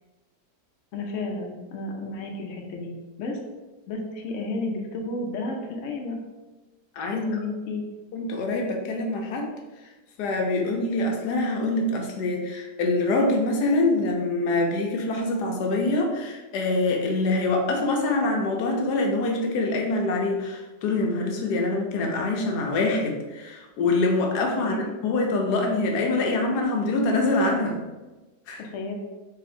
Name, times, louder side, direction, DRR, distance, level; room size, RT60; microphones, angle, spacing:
voice 1, 0.9-3.4 3.9-6.2 7.0-7.8 24.6-24.9 28.6-28.9, left 3 dB, 60° left, 1 dB, 0.9 m, -32 dB
voice 2, 8.1-9.5 10.2-27.8 28.5-28.6, left 2 dB, 80° left, 1 dB, 1.2 m, -25 dB
3.6 x 2.8 x 4.2 m, 1.2 s
omnidirectional pair, 1.8 m